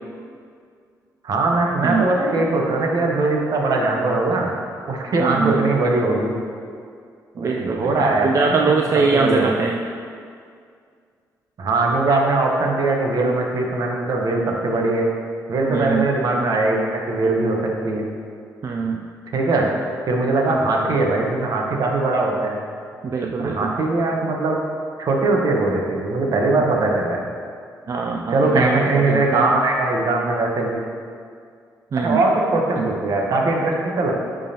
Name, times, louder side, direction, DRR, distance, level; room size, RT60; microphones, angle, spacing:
voice 1, 1.2-4.5 4.9-6.4 7.3-8.7 9.1-9.5 11.6-15.1 15.5-18.1 19.3-19.7 20.1-22.6 23.4-24.6 25.0-27.2 28.3-30.8 31.9-34.1, right 2 dB, 65° right, 0 dB, 1.0 m, -20 dB
voice 2, 5.2-5.8 7.4-9.8 15.7-16.2 18.6-19.1 23.0-23.7 27.9-29.5 31.9-32.2 32.8-32.9, right 4 dB, 45° right, 2 dB, 0.4 m, -22 dB
10.0 x 3.7 x 2.8 m, 2.2 s
cardioid pair, 75°, 7 cm